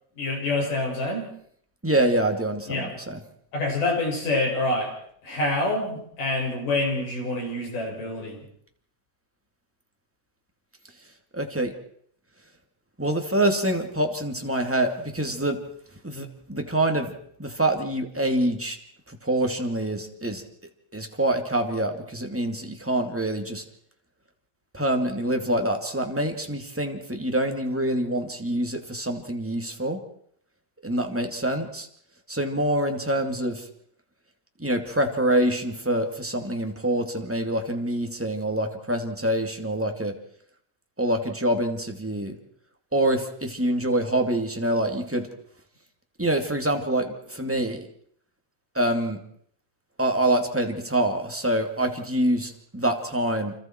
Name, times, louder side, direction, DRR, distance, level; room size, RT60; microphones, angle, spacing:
voice 1, 0.2-1.3 2.7-2.9 3.5-4.9 5.2-8.4, left 2 dB, 70° left, 0 dB, 8.1 m, -26 dB
voice 2, 1.8-3.2 11.3-11.7 13.0-15.6 16.0-17.1 17.4-18.8 19.1-20.4 20.9-23.6 24.7-30.0 30.8-31.9 32.3-33.7 34.6-40.1 41.0-42.4 42.9-45.3 46.2-47.9 48.7-49.2 50.0-53.5, right 1 dB, 5° right, 3 dB, 1.7 m, -25 dB
30.0 x 26.5 x 4.6 m, 0.66 s
omnidirectional pair, 3.9 m